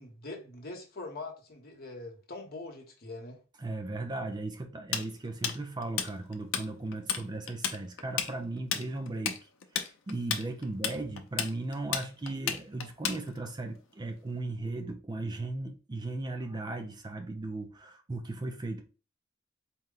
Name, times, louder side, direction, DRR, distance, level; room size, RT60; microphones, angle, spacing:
voice 1, 0.0-3.4, left 2 dB, 50° left, 1.0 m, -43 dB
voice 2, 3.6-9.4 9.7-18.8, right 2 dB, 20° right, 0.4 m, -37 dB
Tools, 4.9-6.6 6.9-7.2 7.5-13.5, left 8 dB, 85° left, 0.6 m, -32 dB
4.3 x 2.2 x 3.7 m
head